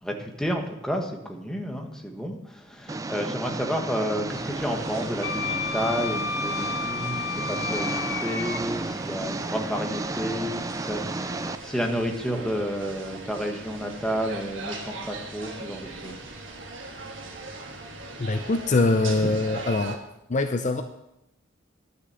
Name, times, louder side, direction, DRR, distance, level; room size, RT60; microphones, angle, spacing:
voice 1, 0.0-16.5 16.9-17.0, equal, 5° left, 2 dB, 1.3 m, -31 dB
Engine, 2.9-11.6, right 2 dB, 15° right, 0.4 m, -33 dB
sound 1, 4.3-20.0, right 2 dB, 65° right, 1.7 m, -40 dB
Wind instrument woodwind instrument, 5.2-8.6, left 5 dB, 60° left, 1.1 m, -31 dB
voice 2, 18.2-20.0 20.3-20.8, left 2 dB, 35° left, 7 dB, 0.6 m, -23 dB
11.5 x 6.6 x 7.6 m, 0.87 s
head